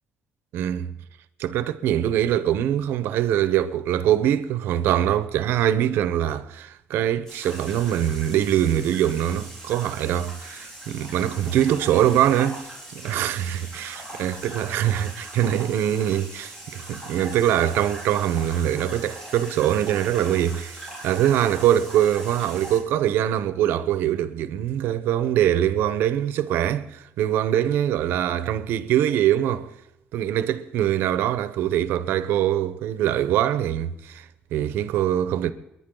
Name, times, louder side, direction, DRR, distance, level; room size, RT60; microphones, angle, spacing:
voice 1, 0.5-0.9 1.4-12.7 12.9-29.7 30.1-35.5, right 11 dB, 85° right, 1.0 m, -23 dB
sound 1, 7.3-22.8, right 1 dB, 10° left, 5.2 m, -40 dB
30.0 x 11.0 x 3.9 m
cardioid pair, 150°, 4 cm